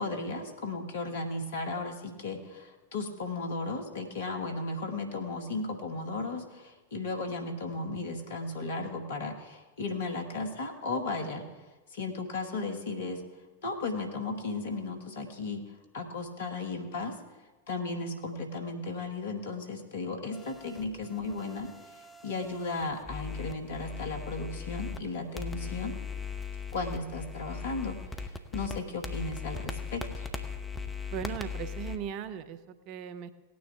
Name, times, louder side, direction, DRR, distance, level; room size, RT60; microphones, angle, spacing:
voice 1, 0.0-11.4 11.9-13.2 13.6-15.7 15.9-17.1 17.7-21.9 22.2-25.9 26.7-30.3, left 3 dB, 60° left, 4 dB, 1.7 m, -35 dB
sound 1, 20.3-25.0 25.3-32.0, left 5 dB, 10° left, 1.0 m, -39 dB
voice 2, 31.1-33.3, right 8 dB, 40° right, 12 dB, 0.7 m, -38 dB
18.0 x 9.4 x 3.6 m, 1.2 s
figure-of-eight pair, 90°, 0 cm